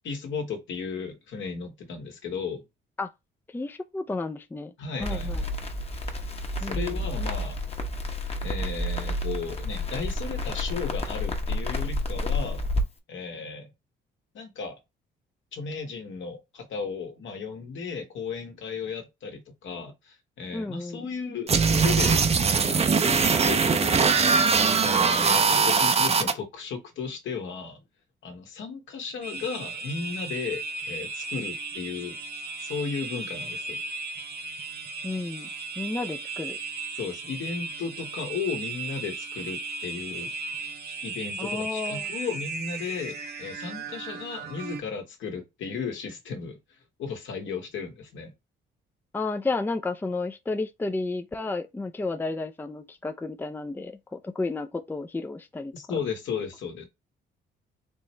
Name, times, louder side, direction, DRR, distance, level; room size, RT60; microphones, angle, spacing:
voice 1, 0.0-2.6 4.8-5.5 6.7-7.6 8.4-12.6 13.1-13.7 14.3-14.8 15.5-22.3 22.6-24.2 24.8-27.8 28.2-32.2 32.6-33.8 36.9-40.3 40.9-46.6 47.0-48.3 55.7-56.9, left 5 dB, 70° left, 1.6 m, -35 dB
voice 2, 3.5-4.7 5.0-5.4 6.6-7.0 20.5-21.1 35.0-35.5 35.8-36.6 41.4-42.1 49.1-55.7, left 3 dB, 10° left, 0.5 m, -32 dB
Crackle, 5.0-12.8, left 1 dB, 30° left, 1.1 m, -30 dB
sound 1, 21.5-26.3, right 5 dB, 30° right, 0.7 m, -21 dB
sound 2, 29.2-44.8, right 3 dB, 55° right, 1.1 m, -36 dB
4.5 x 3.0 x 3.3 m
cardioid pair, 90°, 20 cm